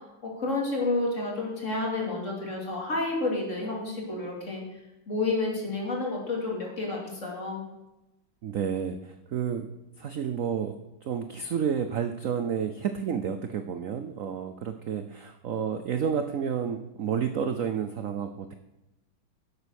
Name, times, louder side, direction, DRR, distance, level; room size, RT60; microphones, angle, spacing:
voice 1, 0.2-4.6 5.1-7.6, left 2 dB, 35° left, -2 dB, 3.2 m, -30 dB
voice 2, 8.4-9.7 10.0-18.5, right 7 dB, 70° right, 8 dB, 0.7 m, -30 dB
11.0 x 7.8 x 6.5 m, 0.97 s
omnidirectional pair, 2.2 m